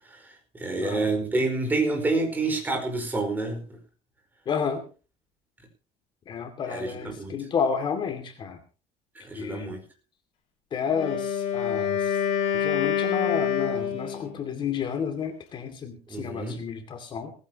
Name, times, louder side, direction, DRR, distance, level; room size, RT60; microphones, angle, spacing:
voice 1, 0.1-3.6 6.7-7.4 9.1-9.8 16.1-16.6, right 3 dB, 10° right, 3 dB, 4.8 m, -28 dB
voice 2, 0.8-1.1 4.5-4.8 6.3-8.6 9.4-9.8 10.7-12.1 12.5-17.3, left 6 dB, 35° left, 7 dB, 2.4 m, -31 dB
Wind instrument woodwind instrument, 10.9-14.4, left 8 dB, 50° left, 5.5 m, -26 dB
19.5 x 15.5 x 3.0 m, 0.35 s
cardioid pair, 160°, 14 cm